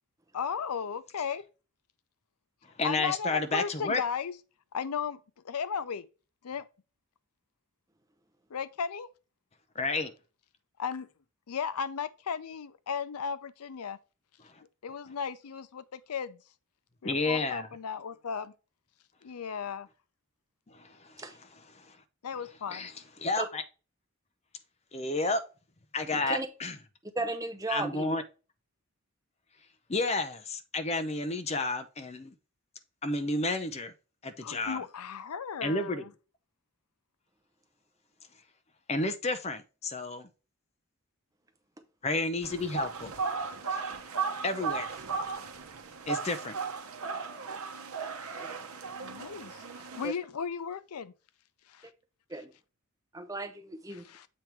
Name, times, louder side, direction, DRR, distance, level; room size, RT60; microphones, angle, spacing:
voice 1, 0.3-1.4 2.6-4.3 4.7-6.1 6.4-6.7 8.5-9.1 10.8-11.1 11.5-14.0 14.8-16.4 17.0-18.5 19.2-19.9 22.2-22.9 34.4-36.1 49.0-51.1 51.7-51.9 52.3-52.4 53.9-54.3, left 6 dB, 90° left, 0.5 m, -35 dB
voice 2, 2.8-4.0 9.8-10.1 17.0-17.7 20.7-21.2 21.7-22.0 22.7-22.9 23.2-23.6 24.9-25.4 25.9-26.8 27.7-28.2 29.9-32.3 33.0-33.9 34.2-34.8 35.6-36.1 38.9-40.3 42.0-43.1 43.7-43.9 44.4-45.0 46.1-46.6, left 2 dB, 30° left, 0.6 m, -31 dB
voice 3, 27.1-28.2 48.4-48.6 52.3-52.5 53.1-54.0, right 2 dB, 15° right, 0.7 m, -35 dB
sound 1, 42.4-50.1, right 5 dB, 80° right, 0.9 m, -36 dB
7.6 x 3.5 x 4.4 m
head